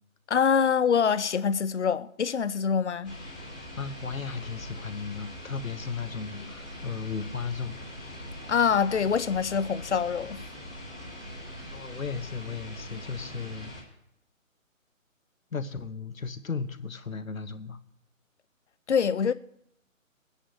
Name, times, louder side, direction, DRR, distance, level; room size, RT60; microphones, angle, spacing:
voice 1, 0.3-3.2 8.5-10.4 18.9-19.3, left 6 dB, 55° left, 0.6 m, -25 dB
sound 1, 3.0-13.8, equal, 5° left, 0.7 m, -42 dB
voice 2, 3.8-7.8 11.7-13.7 15.5-17.8, left 5 dB, 80° left, 1.1 m, -35 dB
22.0 x 9.9 x 3.1 m
figure-of-eight pair, 150°, 41 cm